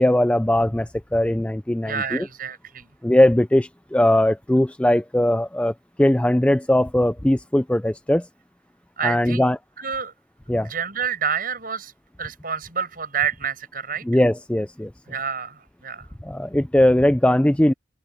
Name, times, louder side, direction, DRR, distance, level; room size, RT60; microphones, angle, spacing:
voice 1, 0.0-2.3 3.0-5.7 6.0-8.3 9.0-9.6 10.5-10.7 14.1-14.9 16.2-17.7, left 1 dB, 5° left, 0.4 m, -19 dB
voice 2, 1.8-2.9 9.0-9.5 9.8-10.1 10.6-11.9 12.2-14.2 15.1-16.0, right 7 dB, 45° right, 7.5 m, -28 dB
open air
head